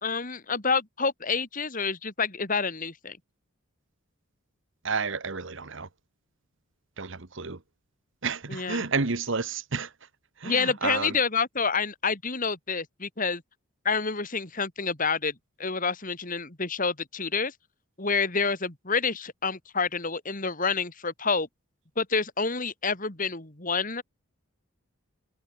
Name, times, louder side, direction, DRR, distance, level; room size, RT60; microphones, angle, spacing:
voice 1, 0.0-3.2 8.5-8.9 10.4-13.4 13.8-15.3 15.6-17.5 18.0-21.5 22.0-24.0, left 5 dB, 40° left, 2.6 m, -28 dB
voice 2, 4.8-5.9 7.0-7.6 8.2-9.9 10.4-11.2, right 4 dB, 55° right, 1.2 m, -30 dB
head